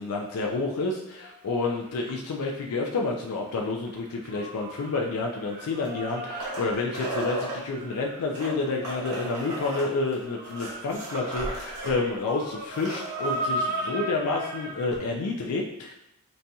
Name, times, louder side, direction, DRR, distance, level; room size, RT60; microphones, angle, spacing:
voice 1, 0.0-15.9, left 3 dB, 85° left, 0 dB, 0.4 m, -29 dB
sound 1, 1.2-3.2 3.5-15.0, right 1 dB, 45° right, 0.3 m, -37 dB
sound 2, 5.7-7.6 8.2-11.9 12.3-12.4 12.6-13.4 14.9-15.0, right 2 dB, 85° right, 1.0 m, -35 dB
4.0 x 2.2 x 2.6 m, 0.82 s
head